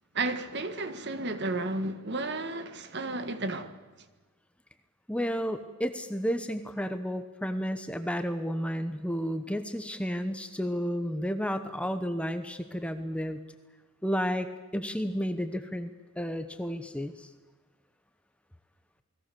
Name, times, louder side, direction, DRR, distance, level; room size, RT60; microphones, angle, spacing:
voice 1, 0.1-3.8, right 2 dB, 50° right, 1.6 m, -32 dB
voice 2, 5.1-13.4 14.0-14.5 14.7-15.9 16.2-17.3, equal, 5° left, 1.0 m, -32 dB
28.5 x 20.5 x 6.9 m
head